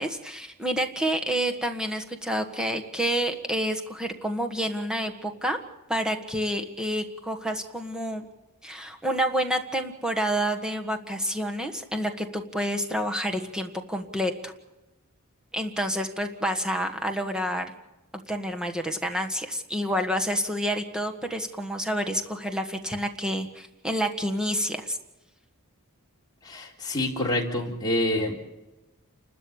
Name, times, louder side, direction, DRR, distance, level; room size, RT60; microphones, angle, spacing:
voice 1, 0.0-5.6 5.9-8.2 8.6-14.5 15.5-17.7 18.3-25.0, equal, 5° right, 4 dB, 1.6 m, -28 dB
voice 2, 26.4-28.3, left 1 dB, 20° left, -2 dB, 3.7 m, -27 dB
29.5 x 13.0 x 8.7 m, 1.0 s
head